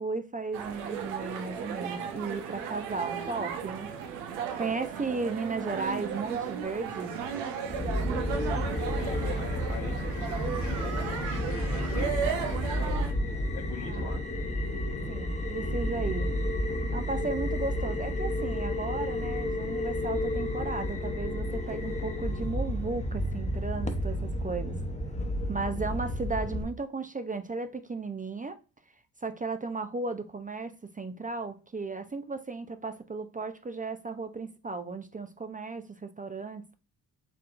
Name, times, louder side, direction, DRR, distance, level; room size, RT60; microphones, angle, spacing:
voice 1, 0.0-4.0 4.5-7.1 13.8-14.2 15.1-16.3 16.9-24.8 25.5-28.6 29.2-36.7, right 3 dB, 20° right, 0.5 m, -35 dB
sound 1, 0.5-13.1, right 7 dB, 90° right, 0.8 m, -35 dB
sound 2, 7.7-26.6, left 1 dB, 15° left, 0.9 m, -31 dB
voice 2, 8.3-13.1 13.5-14.2, left 6 dB, 75° left, 1.3 m, -43 dB
4.6 x 3.6 x 2.5 m
hypercardioid pair, 50°, 45 cm